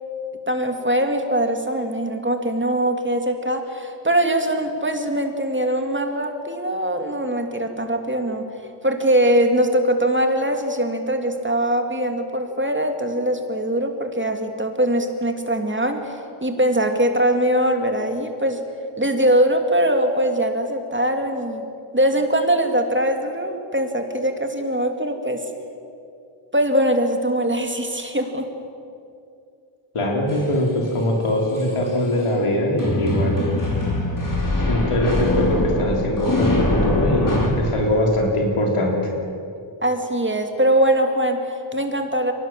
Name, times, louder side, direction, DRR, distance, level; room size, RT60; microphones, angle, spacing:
voice 1, 0.5-8.5 8.8-18.6 19.0-21.6 21.9-25.4 26.5-28.5 39.8-42.3, right 1 dB, 25° right, 4 dB, 2.7 m, -22 dB
voice 2, 29.9-33.5 34.7-38.9, left 1 dB, 85° left, 0 dB, 4.0 m, -22 dB
sound 1, 30.3-30.4 31.6-31.9 32.8-37.5, left 1 dB, 40° left, 4.8 m, -22 dB
23.0 x 18.5 x 7.5 m, 2.5 s
cardioid pair, 50°, 50 cm